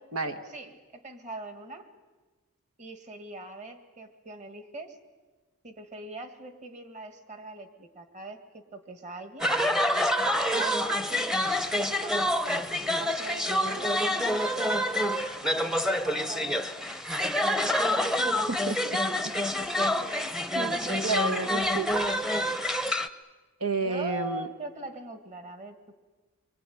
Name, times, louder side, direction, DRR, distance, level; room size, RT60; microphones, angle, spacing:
voice 1, 0.5-1.9 2.8-5.0 5.6-9.5 10.5-10.8 11.1-11.5 11.9-15.0 15.8-17.0 17.9-18.4 19.1-19.2 20.7-21.5 23.8-25.9, right 3 dB, 35° right, 8 dB, 2.0 m, -42 dB
sound 1, 9.4-23.1, left 1 dB, ahead, 0.8 m, -27 dB
voice 2, 20.0-20.7 21.0-21.9 23.6-24.5, right 3 dB, 80° right, 8 dB, 1.4 m, -31 dB
24.5 x 24.0 x 9.4 m, 1.3 s
head